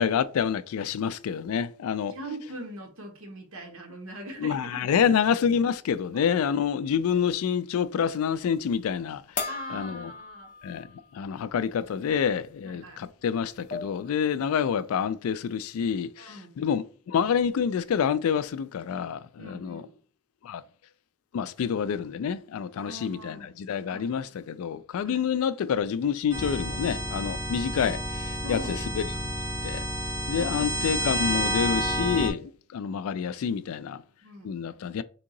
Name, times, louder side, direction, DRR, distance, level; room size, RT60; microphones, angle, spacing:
voice 1, 0.0-2.2 4.4-10.1 10.6-19.8 20.4-20.6 21.3-29.0 29.6-29.9 30.3-34.0 34.4-35.0, left 7 dB, 75° left, 0.3 m, -28 dB
voice 2, 2.1-4.9 5.6-5.7 6.1-6.4 9.5-10.5 12.6-13.0 14.3-14.4 16.2-16.5 19.4-19.9 22.8-23.5 23.8-24.2 25.0-25.2 28.4-28.8 30.4-31.3 34.2-34.6, right 1 dB, 70° right, 1.1 m, -42 dB
sound 1, 9.4-11.0 11.4-11.5 13.0-13.1 13.4-14.1, left 4 dB, 40° left, 0.9 m, -36 dB
sound 2, 26.3-32.3, equal, 15° right, 0.9 m, -30 dB
3.6 x 2.8 x 3.8 m
head